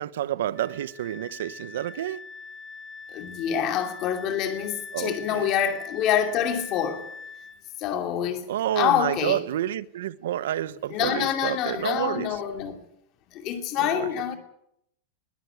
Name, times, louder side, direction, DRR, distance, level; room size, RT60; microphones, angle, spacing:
voice 1, 0.0-2.2 4.9-5.5 8.5-12.4 13.8-14.1, right 12 dB, 80° right, 0.9 m, -29 dB
Wind instrument woodwind instrument, 0.6-7.6, left 4 dB, 10° left, 1.0 m, -42 dB
voice 2, 3.1-7.1 7.8-8.5 8.7-9.4 10.9-12.8 13.3-14.4, left 9 dB, 30° left, 2.6 m, -26 dB
21.5 x 13.0 x 9.4 m
supercardioid pair, 180°, 0 cm